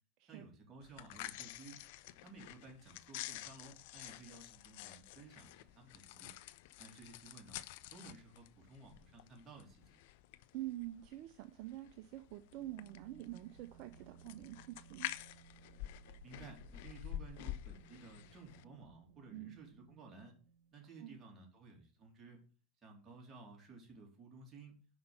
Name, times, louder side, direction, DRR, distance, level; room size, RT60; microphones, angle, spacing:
voice 1, 0.3-1.8 2.2-6.3 6.8-7.6 7.9-10.0 16.2-20.4 20.7-22.4 22.8-24.8, right 3 dB, 30° right, 3.7 m, -55 dB
sound 1, 0.8-18.6, left 14 dB, 65° left, 0.5 m, -49 dB
voice 2, 10.5-15.1 19.3-19.6 21.0-21.2, right 15 dB, 60° right, 0.6 m, -46 dB
sound 2, 12.5-21.0, right 7 dB, 75° right, 1.2 m, -62 dB
5.9 x 5.3 x 6.7 m
hypercardioid pair, 85°, 0 cm